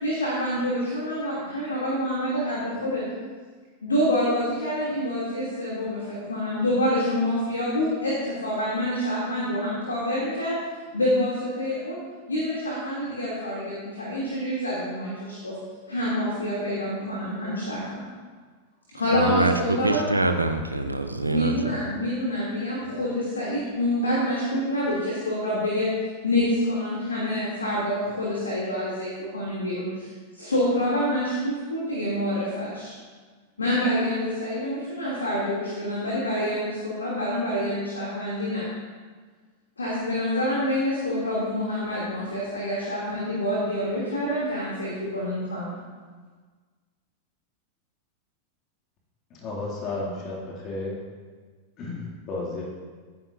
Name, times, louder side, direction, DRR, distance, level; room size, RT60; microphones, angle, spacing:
voice 1, 0.0-3.0 3.8-10.6 10.9-12.0 12.3-15.6 15.9-18.0 18.9-20.0 21.3-25.9 26.2-32.9 33.6-38.6 39.8-45.7, left 1 dB, 75° left, -6 dB, 2.8 m, -27 dB
voice 2, 19.1-21.8, right 2 dB, 85° right, 7 dB, 0.9 m, -25 dB
voice 3, 49.4-50.9 51.8-52.6, left 2 dB, 35° left, -3 dB, 2.5 m, -32 dB
16.0 x 10.0 x 2.7 m, 1.5 s
figure-of-eight pair, 90°, 0 cm